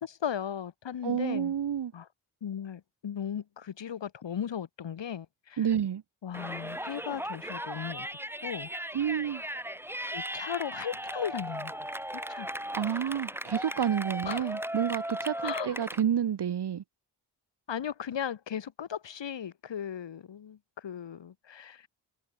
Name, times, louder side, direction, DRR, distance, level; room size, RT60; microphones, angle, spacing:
voice 1, 0.0-1.5 1.9-2.1 2.4-5.7 6.2-8.1 8.4-8.7 10.0-11.8 12.1-12.5 14.2-14.5 15.4-15.7 17.7-21.9, left 8 dB, 75° left, 2.5 m, -37 dB
voice 2, 1.0-1.9 5.6-6.0 8.9-9.4 12.7-16.8, right 9 dB, 65° right, 1.3 m, -29 dB
Yell, 6.3-16.0, equal, 5° right, 5.3 m, -37 dB
cardioid pair, 65°, 44 cm